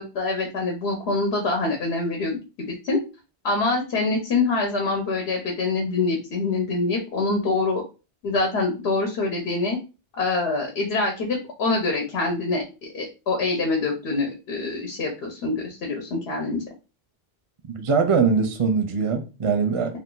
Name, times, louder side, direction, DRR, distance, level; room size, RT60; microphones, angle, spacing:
voice 1, 0.0-3.0 3.4-7.8 8.2-9.8 10.1-12.6 12.9-16.6, left 3 dB, 85° left, 1.0 m, -25 dB
voice 2, 17.8-20.0, right 5 dB, 45° right, 0.4 m, -22 dB
2.6 x 2.4 x 3.7 m
omnidirectional pair, 1.0 m